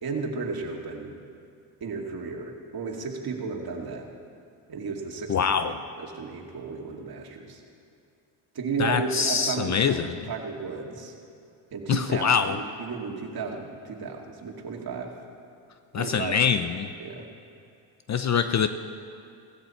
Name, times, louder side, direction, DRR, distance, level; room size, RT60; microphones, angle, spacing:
voice 1, 0.0-1.1 1.8-4.1 4.7-7.6 8.5-11.1 11.7-15.1 16.0-16.4 17.0-17.3, right 4 dB, 45° right, 1 dB, 2.3 m, -34 dB
voice 2, 5.3-5.8 8.8-10.2 11.9-12.6 15.9-16.9 18.1-18.7, left 6 dB, 35° left, 10 dB, 0.6 m, -24 dB
16.5 x 15.5 x 4.4 m, 2.6 s
cardioid pair, 100°, 50 cm